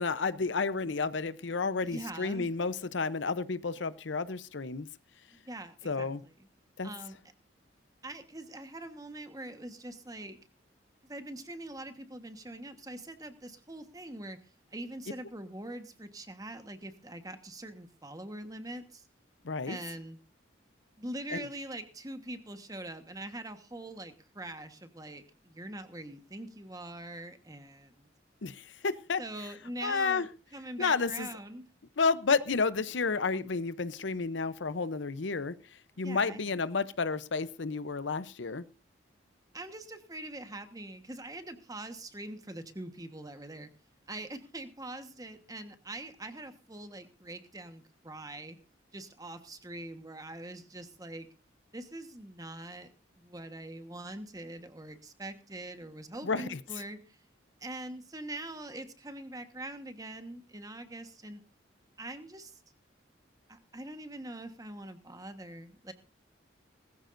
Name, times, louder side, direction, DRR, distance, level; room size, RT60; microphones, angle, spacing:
voice 1, 0.0-4.9 5.8-6.2 6.8-6.9 19.4-19.8 21.3-21.5 28.4-29.2 29.8-30.3 30.8-31.3 32.0-35.6 36.0-38.6 56.2-56.6, left 4 dB, 70° left, 15 dB, 0.7 m, -31 dB
voice 2, 1.8-2.5 5.3-6.1 6.8-7.2 8.0-10.4 11.0-14.4 14.7-19.0 19.7-20.2 21.0-28.1 29.2-30.3 30.5-31.7 35.9-36.4 39.5-43.7 44.1-48.6 48.9-51.3 51.7-52.9 53.2-57.2 57.6-61.4 62.0-62.6 63.5-65.9, right 1 dB, 20° right, 8 dB, 1.3 m, -43 dB
20.0 x 14.5 x 2.6 m, 0.32 s
head